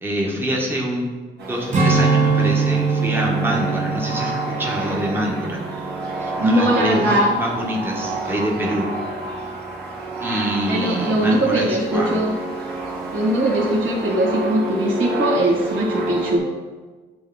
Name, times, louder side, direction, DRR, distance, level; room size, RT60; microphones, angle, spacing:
voice 1, 0.0-1.1 1.5-5.6 6.2-8.9 10.2-12.2, equal, 10° right, -2 dB, 1.2 m, -25 dB
sound 1, 1.4-16.4, right 1 dB, 55° right, 1.8 m, -29 dB
Strum, 1.7-6.4 6.8-7.0, right 4 dB, 35° right, 1.2 m, -22 dB
voice 2, 6.4-7.3 10.6-12.3 13.1-16.4, right 1 dB, 75° right, -4 dB, 1.7 m, -20 dB
8.0 x 3.3 x 3.9 m, 1.4 s
cardioid pair, 90°, 20 cm